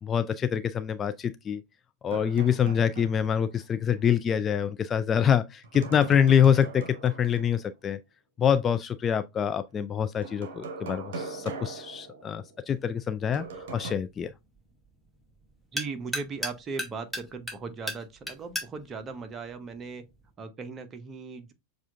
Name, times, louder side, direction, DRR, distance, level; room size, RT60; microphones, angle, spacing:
voice 1, 0.0-1.6 2.0-8.0 8.4-13.4 13.7-14.3, left 8 dB, 25° left, 0.3 m, -25 dB
sound 1, 2.1-3.6 3.9-4.0 5.6-7.6 10.2-12.7 13.3-13.9, right 3 dB, 60° right, 0.9 m, -40 dB
sound 2, 12.7-20.3, left 1 dB, ahead, 0.9 m, -40 dB
voice 2, 15.7-20.0 20.4-21.5, right 4 dB, 25° right, 0.8 m, -38 dB
7.2 x 2.4 x 2.4 m
figure-of-eight pair, 85°, 0 cm